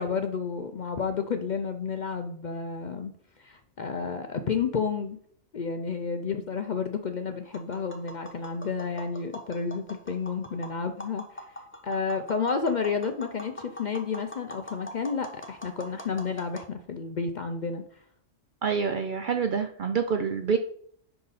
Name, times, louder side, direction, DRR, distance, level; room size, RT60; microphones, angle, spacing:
voice 1, 0.0-5.2 5.5-11.5 11.8-17.8, left 5 dB, 55° left, 7 dB, 0.5 m, -31 dB
Tap, 7.4-16.7, left 1 dB, 10° left, 0.7 m, -44 dB
voice 2, 18.6-20.6, right 6 dB, 60° right, 7 dB, 0.5 m, -27 dB
10.5 x 4.0 x 4.0 m, 0.62 s
omnidirectional pair, 1.3 m